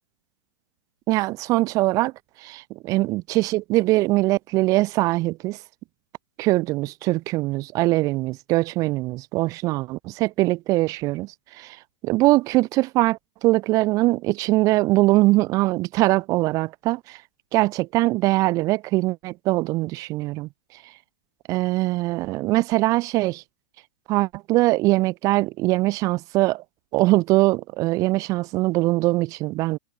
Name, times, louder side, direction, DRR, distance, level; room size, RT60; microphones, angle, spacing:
voice 1, 1.1-2.1 2.4-5.6 6.4-11.8 12.0-17.2 17.5-20.5 21.5-23.4 24.1-26.6 26.9-29.8, right 19 dB, 25° right, 1.3 m, -22 dB
supercardioid pair, 160°, 13 cm